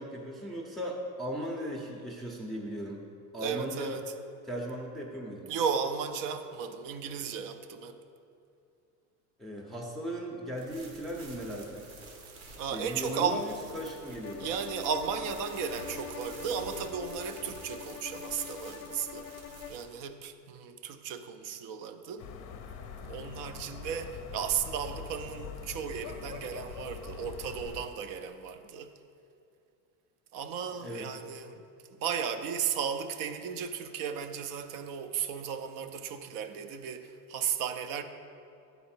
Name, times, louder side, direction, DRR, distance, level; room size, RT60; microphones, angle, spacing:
voice 1, 0.0-3.0 3.3-4.0 4.4-5.5 9.4-11.9 12.7-14.5 30.7-31.1, equal, ahead, -2 dB, 0.6 m, -37 dB
voice 2, 3.4-4.0 5.5-8.0 12.3-13.5 14.4-19.3 19.7-22.3 23.0-28.9 30.3-38.0, right 7 dB, 50° right, 9 dB, 0.6 m, -35 dB
sound 1, 10.6-19.8, right 3 dB, 85° right, 1.4 m, -49 dB
Bowed string instrument, 14.2-19.8, left 9 dB, 90° left, 0.5 m, -44 dB
sound 2, 22.2-27.9, left 7 dB, 40° left, 0.6 m, -43 dB
9.3 x 4.1 x 4.4 m, 2.6 s
supercardioid pair, 115°, 41 cm